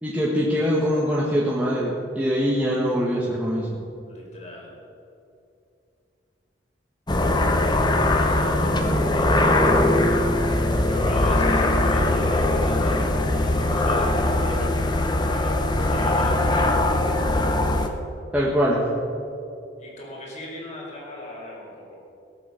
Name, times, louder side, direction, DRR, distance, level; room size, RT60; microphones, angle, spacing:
voice 1, 0.0-3.7 16.5-16.7 18.3-18.8, equal, 10° right, -6 dB, 1.7 m, -23 dB
voice 2, 4.0-4.7 8.3-8.8 10.8-16.8 19.8-22.0, left 1 dB, 40° left, -3 dB, 4.3 m, -38 dB
sound 1, 7.1-17.9, left 1 dB, 25° left, 0.9 m, -21 dB
18.0 x 8.5 x 6.6 m, 2.6 s
head